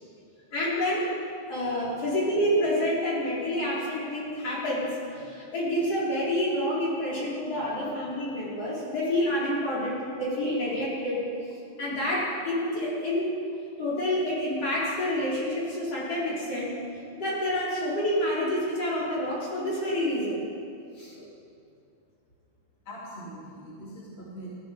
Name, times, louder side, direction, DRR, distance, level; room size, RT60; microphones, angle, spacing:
voice 1, 0.5-1.1 1.5-11.2 11.8-13.3 13.8-16.7 17.2-20.4 20.9-21.2, left 1 dB, 50° left, -7 dB, 5.1 m, -28 dB
voice 2, 22.8-24.5, equal, 20° left, -6 dB, 3.1 m, -42 dB
18.0 x 14.0 x 5.3 m, 2.5 s
omnidirectional pair, 3.6 m